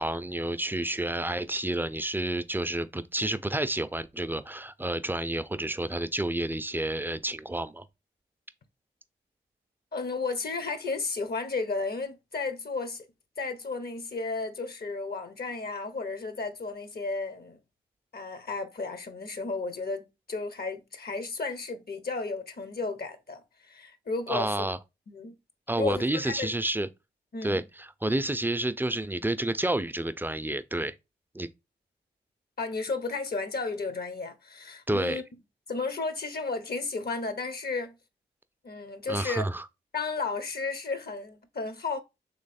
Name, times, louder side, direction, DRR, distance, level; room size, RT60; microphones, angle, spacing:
voice 1, 0.0-7.9 24.3-24.8 25.7-26.9 27.4-30.9 31.3-31.5 34.9-35.2 39.1-39.7, right 1 dB, 10° right, 0.5 m, -30 dB
voice 2, 9.9-13.1 13.4-17.6 18.1-24.7 25.1-25.3 25.8-26.5 27.3-27.6 32.6-35.2 35.7-38.0 38.6-39.5 39.9-42.0, left 3 dB, 50° left, 0.9 m, -33 dB
3.2 x 3.1 x 4.2 m
supercardioid pair, 40°, 20 cm